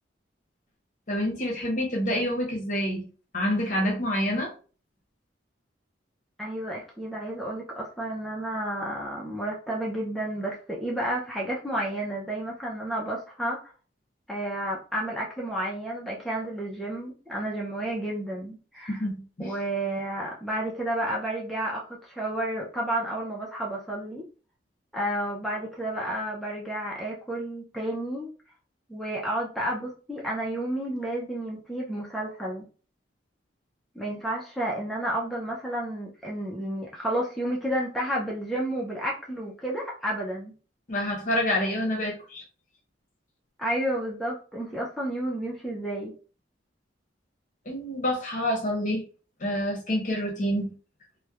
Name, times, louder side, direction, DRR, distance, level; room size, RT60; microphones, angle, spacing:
voice 1, 1.1-3.1 3.3-4.5 18.9-19.5 40.9-42.4 47.7-49.0 49.4-50.7, left 1 dB, 45° left, 0.7 m, -27 dB
voice 2, 6.4-13.6 14.3-19.0 19.4-24.2 24.9-28.3 28.9-32.6 34.0-40.5 43.6-46.1, right 1 dB, ahead, 0.4 m, -31 dB
3.0 x 2.0 x 2.3 m
head